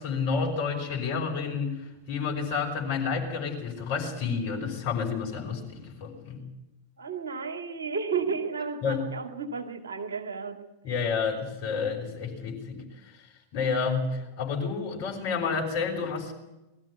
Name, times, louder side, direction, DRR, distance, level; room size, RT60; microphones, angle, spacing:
voice 1, 0.0-6.4 8.8-9.0 10.8-13.3 13.5-16.3, left 5 dB, 50° left, 2 dB, 5.3 m, -30 dB
voice 2, 7.0-10.6, right 5 dB, 70° right, 5 dB, 1.9 m, -32 dB
21.0 x 13.5 x 9.4 m, 1.0 s
figure-of-eight pair, 90°, 0 cm